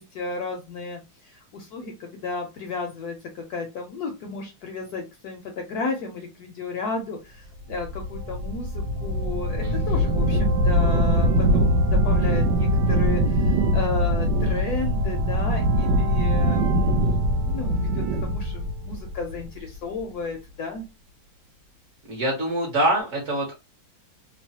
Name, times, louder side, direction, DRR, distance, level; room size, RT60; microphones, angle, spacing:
voice 1, 0.0-20.8, left 4 dB, 75° left, 3 dB, 0.9 m, -33 dB
sound 1, 7.7-19.8, equal, 75° right, 1.2 m, -22 dB
voice 2, 9.6-10.0 22.1-23.5, right 1 dB, 55° right, -1 dB, 0.9 m, -25 dB
3.1 x 2.1 x 2.7 m, 0.26 s
omnidirectional pair, 2.1 m